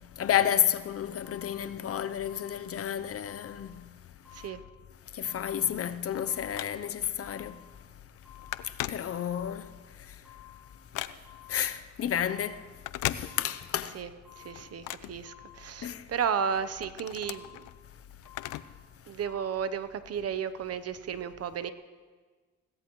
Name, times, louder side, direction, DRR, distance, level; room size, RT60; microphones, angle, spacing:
voice 1, 0.0-3.8 5.1-7.6 8.6-9.7 10.1-10.2 11.5-12.6 13.1-14.0 15.8-16.1, left 9 dB, 50° left, 0.7 m, -31 dB
sound 1, 0.6-0.8 1.2-1.8 2.2-2.8 3.2-3.8 4.2-4.8 5.2-5.8 6.2-6.8 7.2-7.8 8.2-8.8 9.2-9.8 10.2-10.8 11.2-11.8 12.2-12.8 13.2-13.8 14.2-14.8 15.2-15.8 16.2-16.8 17.2-17.8 18.2-18.8 19.2-19.5, left 13 dB, 5° right, 5.8 m, -54 dB
voice 2, 4.3-4.6 13.9-14.1 14.4-17.6 19.1-21.7, right 7 dB, 55° right, 0.9 m, -33 dB
Telephone, 5.7-7.1 7.6-7.8 8.1-9.6 10.0-11.5 12.7-13.8 14.1-15.9 16.4-18.9 19.2-19.3 20.1-20.2, left 14 dB, 85° left, 0.6 m, -39 dB
21.5 x 17.0 x 3.1 m
cardioid pair, 90°, 30 cm